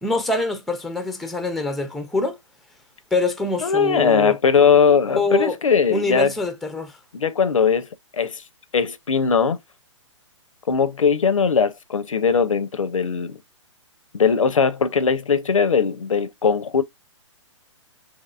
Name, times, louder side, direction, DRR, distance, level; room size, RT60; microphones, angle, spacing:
voice 1, 0.0-2.4 3.1-4.4 5.1-5.6 5.9-6.9, left 2 dB, ahead, 0.4 m, -25 dB
voice 2, 3.6-6.3 7.1-8.4 8.7-9.6 10.7-13.4 14.1-16.8, left 6 dB, 90° left, 0.5 m, -19 dB
3.5 x 2.9 x 2.2 m
hypercardioid pair, 130°, 16 cm